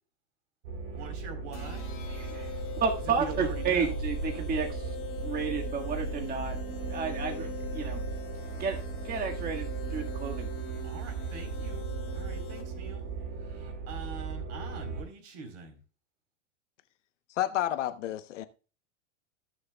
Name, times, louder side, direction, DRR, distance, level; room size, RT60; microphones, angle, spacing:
sound 1, 0.6-15.0, right 4 dB, 75° right, 4.4 m, -36 dB
voice 1, 0.9-1.9 3.1-4.0 10.8-11.9 12.1-13.1 13.4-15.8, right 4 dB, 50° right, 3.9 m, -43 dB
sound 2, 1.5-12.9, left 11 dB, 35° left, 1.9 m, -44 dB
voice 2, 2.1-2.5 2.8-4.8 5.2-6.6 6.9-7.5 7.7-8.0 8.6-8.8 9.0-10.5, right 6 dB, 25° right, 1.7 m, -31 dB
voice 3, 17.4-18.5, left 12 dB, 80° left, 1.0 m, -30 dB
19.5 x 6.6 x 2.3 m
supercardioid pair, 125°, 36 cm